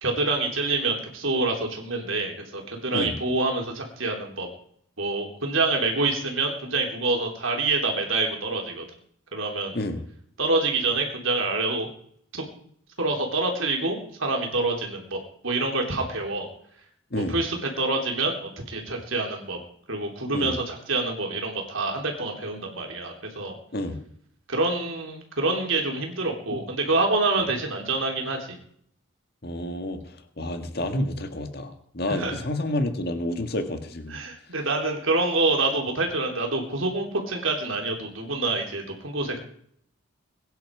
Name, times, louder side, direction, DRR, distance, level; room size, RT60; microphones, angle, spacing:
voice 1, 0.0-4.5 5.0-8.9 9.3-9.8 10.4-11.9 12.3-12.4 13.0-16.5 17.1-19.6 19.9-23.6 24.5-28.6 32.1-32.4 34.1-39.4, right 3 dB, 70° right, 2 dB, 3.8 m, -26 dB
voice 2, 29.4-30.0 30.4-34.2, left 1 dB, 45° left, 7 dB, 1.9 m, -29 dB
22.5 x 10.5 x 4.9 m, 0.65 s
head